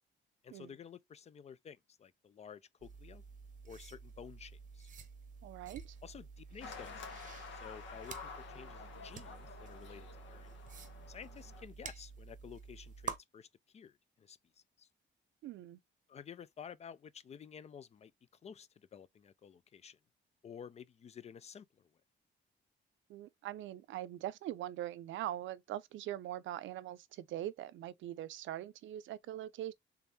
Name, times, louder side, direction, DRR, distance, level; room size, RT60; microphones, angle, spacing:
voice 1, 0.4-3.2 3.6-4.9 6.0-7.1 7.5-10.6 11.1-13.5 13.7-14.4 14.8-14.9 16.1-18.1 18.4-20.0 20.4-21.9, left 7 dB, 35° left, 0.3 m, -52 dB
sound 1, 2.8-13.2, right 6 dB, 45° right, 0.8 m, -49 dB
voice 2, 5.4-6.0 15.4-15.8 23.1-29.7, right 13 dB, 90° right, 0.5 m, -42 dB
football game in a big arena, 6.6-11.6, left 5 dB, 80° left, 1.4 m, -50 dB
3.5 x 3.5 x 2.6 m
cardioid pair, 145°, 19 cm